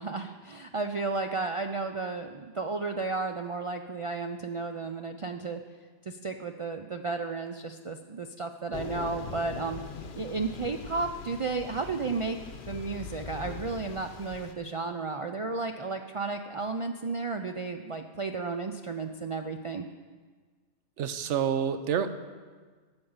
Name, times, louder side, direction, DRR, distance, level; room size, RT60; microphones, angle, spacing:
voice 1, 0.0-5.6 6.0-9.8 10.1-12.4 12.7-19.9, right 4 dB, 60° right, 5 dB, 0.3 m, -33 dB
Thunder / Rain, 8.7-14.5, left 6 dB, 65° left, 1.0 m, -42 dB
voice 2, 21.0-22.1, right 8 dB, 85° right, 10 dB, 1.0 m, -28 dB
9.8 x 8.7 x 7.1 m, 1.4 s
omnidirectional pair, 1.2 m